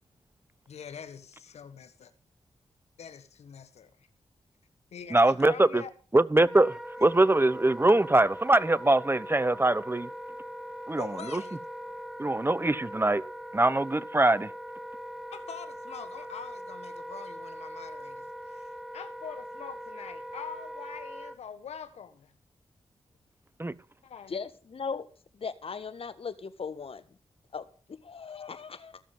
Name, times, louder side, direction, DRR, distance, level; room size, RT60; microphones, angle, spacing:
voice 1, 0.7-2.1 3.0-4.1 4.9-5.9 11.0-11.6 11.9-12.0 15.3-22.3 24.0-24.4, left 7 dB, 85° left, 1.5 m, -44 dB
voice 2, 5.1-5.8 6.1-10.1 10.9-11.4 12.2-13.2 13.5-14.5 23.6-23.7, right 2 dB, 20° right, 0.9 m, -23 dB
Wind instrument woodwind instrument, 6.4-21.4, equal, 5° right, 1.3 m, -41 dB
voice 3, 24.3-25.1 25.3-27.2 27.5-29.0, left 5 dB, 60° left, 1.5 m, -38 dB
15.5 x 7.2 x 7.3 m
cardioid pair, 45°, 11 cm